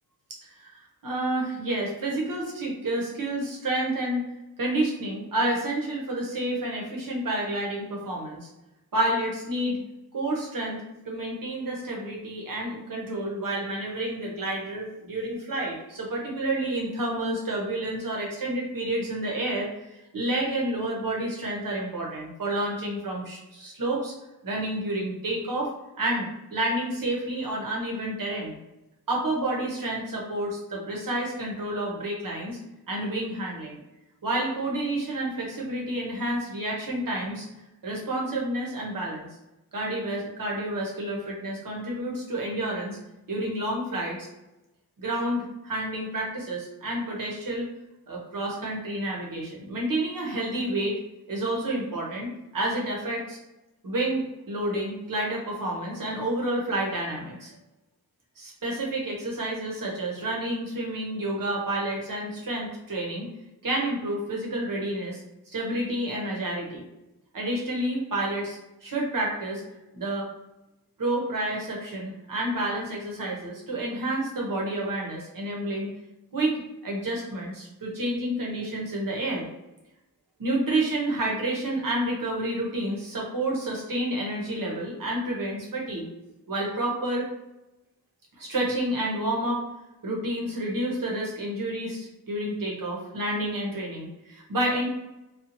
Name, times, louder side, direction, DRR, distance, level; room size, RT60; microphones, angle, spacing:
voice 1, 1.0-4.2 4.6-8.5 8.9-9.8 10.1-24.1 24.4-25.7 26.0-28.6 29.1-32.6 32.9-33.8 34.2-37.5 37.8-39.3 39.7-43.0 43.3-44.3 45.0-47.7 48.1-50.9 51.3-53.4 53.8-57.6 58.4-63.3 63.6-65.2 65.5-66.9 67.3-69.6 69.9-70.3 71.0-75.9 76.3-79.5 80.4-86.1 86.5-87.3 88.4-89.6 90.0-94.9, right 1 dB, 60° right, -2 dB, 0.8 m, -29 dB
2.7 x 2.3 x 2.6 m, 0.98 s
wide cardioid pair, 125°, 38 cm